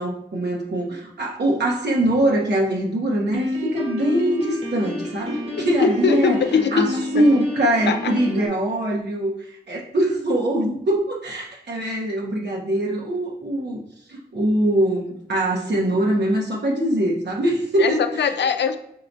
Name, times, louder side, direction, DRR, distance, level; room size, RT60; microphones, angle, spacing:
voice 1, 0.0-6.4 6.7-13.8 14.1-18.0, right 1 dB, 80° right, -3 dB, 1.0 m, -22 dB
Piano, 3.3-8.5, left 2 dB, 35° right, 1.0 m, -30 dB
voice 2, 5.5-6.9 7.1-7.2 7.9-8.1 17.8-18.8, left 6 dB, 85° left, 8 dB, 0.4 m, -21 dB
5.7 x 3.3 x 2.6 m, 0.74 s
cardioid pair, 60°, 17 cm